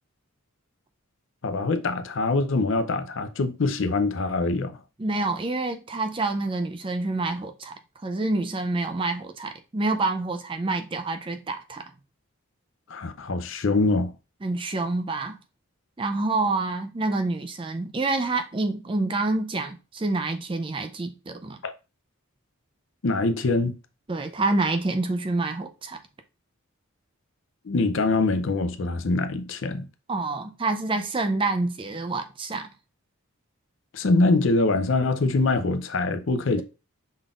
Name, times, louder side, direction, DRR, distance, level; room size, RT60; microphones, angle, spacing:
voice 1, 1.4-4.7 12.9-14.1 21.6-21.7 23.0-23.8 27.6-29.9 33.9-36.6, left 3 dB, 60° left, 0.6 m, -24 dB
voice 2, 5.0-7.7 8.0-11.8 14.4-15.4 16.0-21.6 24.1-26.0 30.1-32.7, right 2 dB, 25° right, 0.4 m, -27 dB
5.3 x 3.8 x 2.4 m
head